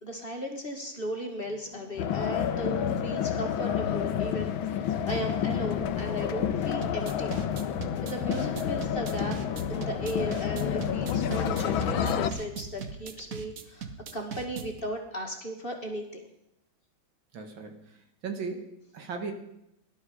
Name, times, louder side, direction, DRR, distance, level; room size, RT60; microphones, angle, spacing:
voice 1, 0.0-7.4 8.0-9.4 9.7-16.3, equal, 30° left, 2 dB, 2.0 m, -36 dB
sound 1, 1.4-12.1, left 6 dB, 55° left, 1.5 m, -48 dB
sound 2, 2.0-12.3, left 9 dB, 90° left, 1.6 m, -29 dB
sound 3, 6.8-14.8, right 5 dB, 50° right, 1.5 m, -40 dB
voice 2, 17.3-17.8 18.2-19.3, right 4 dB, 75° right, 5 dB, 2.5 m, -37 dB
18.0 x 11.5 x 5.0 m, 0.80 s
omnidirectional pair, 2.1 m